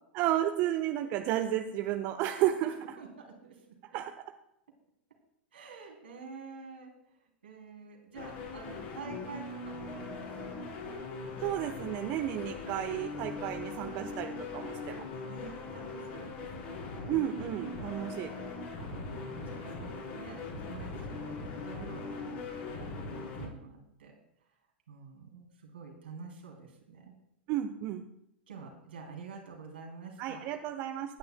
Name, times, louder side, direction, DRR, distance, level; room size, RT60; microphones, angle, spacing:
voice 1, 0.1-2.7 3.9-4.1 11.4-15.0 17.1-18.5 27.5-28.0 30.2-31.2, right 12 dB, 40° right, 6 dB, 0.8 m, -32 dB
voice 2, 3.0-3.6 3.9-4.0 5.5-6.9 7.4-10.9 15.3-16.9 17.8-18.2 18.8-21.4 21.6-24.1 24.9-27.1 28.5-30.4, right 5 dB, 70° right, 1 dB, 3.1 m, -48 dB
sound 1, 8.1-23.5, left 3 dB, 50° left, 4.3 m, -40 dB
24.0 x 9.6 x 2.2 m, 0.79 s
figure-of-eight pair, 90°, 6 cm